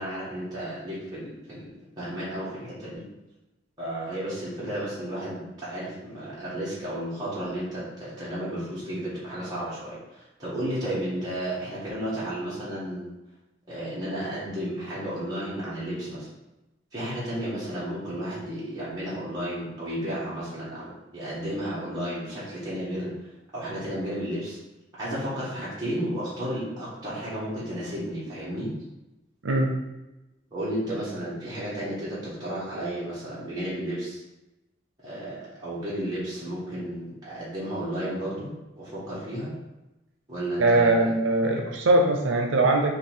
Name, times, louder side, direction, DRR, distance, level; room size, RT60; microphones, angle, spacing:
voice 1, 0.0-1.7 2.0-3.0 3.8-13.1 13.7-16.3 16.9-23.1 23.5-24.6 25.0-28.7 30.5-34.2 35.0-38.5 38.8-39.5 40.3-41.1, right 1 dB, 20° right, -10 dB, 1.3 m, -33 dB
voice 2, 29.4-29.8 40.6-42.9, right 2 dB, 85° right, 2 dB, 0.6 m, -21 dB
4.0 x 2.9 x 4.4 m, 1.0 s
head